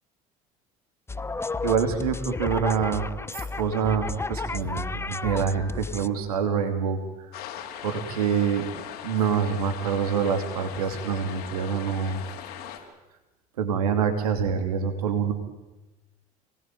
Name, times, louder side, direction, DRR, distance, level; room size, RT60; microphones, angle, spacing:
sound 1, 1.1-6.1, left 3 dB, 15° left, 0.9 m, -32 dB
voice 1, 1.6-3.1 3.3-7.0 7.3-7.4 7.8-8.6 9.0-12.2 13.6-15.3, right 6 dB, 80° right, 7 dB, 2.8 m, -26 dB
sound 2, 7.3-12.8, left 10 dB, 60° left, 4.5 m, -39 dB
28.5 x 20.0 x 9.2 m, 1.1 s
hypercardioid pair, 65°, 19 cm